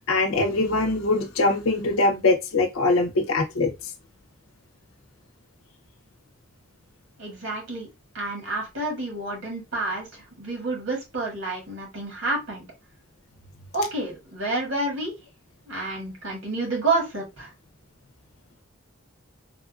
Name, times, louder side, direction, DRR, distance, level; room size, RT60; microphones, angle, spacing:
voice 1, 0.1-3.7, left 2 dB, 75° left, 0.6 m, -22 dB
voice 2, 7.2-7.9 8.1-12.6 13.7-15.1 15.7-17.5, right 2 dB, 75° right, 1.6 m, -29 dB
3.4 x 2.3 x 2.3 m
head